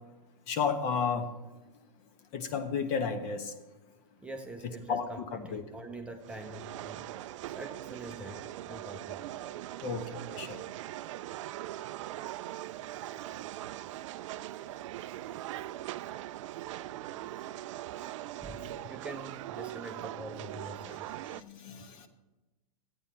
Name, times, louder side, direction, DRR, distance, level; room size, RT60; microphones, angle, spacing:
voice 1, 0.5-1.3 2.3-3.5 4.9-5.6 9.8-10.6 21.3-22.1, left 6 dB, 40° left, 8 dB, 1.2 m, -32 dB
voice 2, 4.2-7.1 7.5-9.2 18.4-21.1, right 1 dB, 5° right, 2 dB, 0.7 m, -45 dB
sound 1, 6.2-21.4, right 14 dB, 55° right, 0.4 m, -41 dB
14.0 x 9.0 x 4.4 m, 1.1 s
hypercardioid pair, 125°, 19 cm